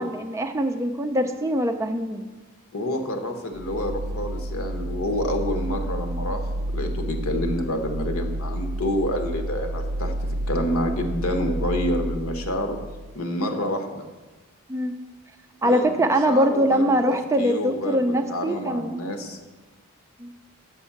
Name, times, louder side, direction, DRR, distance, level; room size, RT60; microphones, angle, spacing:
voice 1, 0.0-2.3 14.7-14.9 15.6-18.9 20.2-20.3, right 1 dB, 15° right, 5 dB, 0.4 m, -23 dB
voice 2, 2.7-6.4 6.7-10.1 10.5-12.8 13.1-14.1 15.6-17.0 17.4-19.4, left 1 dB, 80° left, 5 dB, 1.0 m, -28 dB
sound 1, 3.5-13.2, right 1 dB, 85° right, 0.5 m, -30 dB
7.1 x 5.4 x 7.1 m, 1.2 s
head